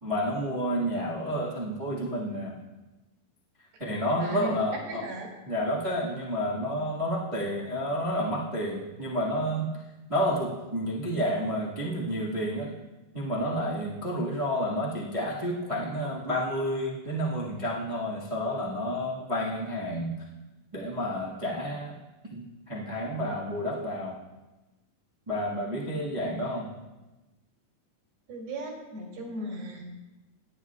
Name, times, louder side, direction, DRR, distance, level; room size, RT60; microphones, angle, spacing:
voice 1, 0.0-2.6 3.8-5.0 5.4-9.7 10.1-12.7 13.1-20.2 20.7-22.0 22.3-24.2 25.3-26.7, equal, 50° right, -6 dB, 0.4 m, -30 dB
voice 2, 4.2-4.5 4.9-5.3 25.8-26.0 28.3-29.9, right 1 dB, 90° right, -2 dB, 4.6 m, -37 dB
19.0 x 9.9 x 2.5 m, 1.1 s
omnidirectional pair, 4.1 m